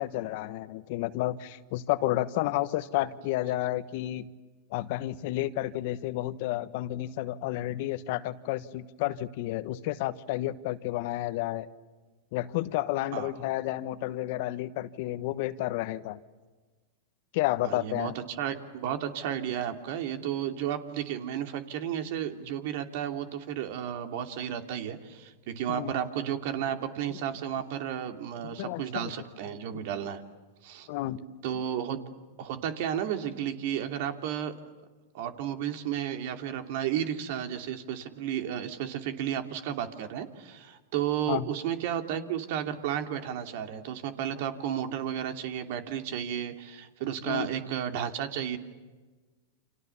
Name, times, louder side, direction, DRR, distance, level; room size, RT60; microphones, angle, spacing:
voice 1, 0.0-4.3 4.7-11.7 12.3-16.2 17.3-18.1 25.7-25.9 28.6-29.0 30.9-31.2 41.3-41.5 47.3-47.5, left 15 dB, 60° left, 14 dB, 1.2 m, -31 dB
voice 2, 17.6-30.2 30.6-30.9 31.4-32.0 32.4-34.5 35.1-48.6, right 9 dB, 60° right, 7 dB, 2.8 m, -33 dB
30.0 x 27.0 x 7.2 m, 1.3 s
hypercardioid pair, 125°, 0 cm